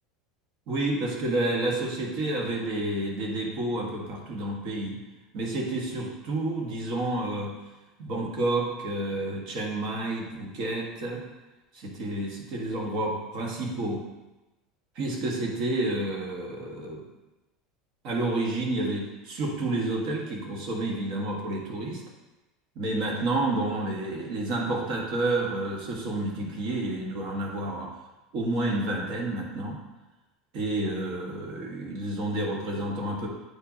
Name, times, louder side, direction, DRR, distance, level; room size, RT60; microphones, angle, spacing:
voice 1, 0.7-5.0 5.3-7.5 8.0-11.2 11.7-14.0 14.9-17.0 18.0-22.0 22.7-27.9 28.3-29.8 30.5-33.3, right 2 dB, 55° right, -1 dB, 1.6 m, -30 dB
8.8 x 4.7 x 2.9 m, 1.1 s
supercardioid pair, 130°, 0 cm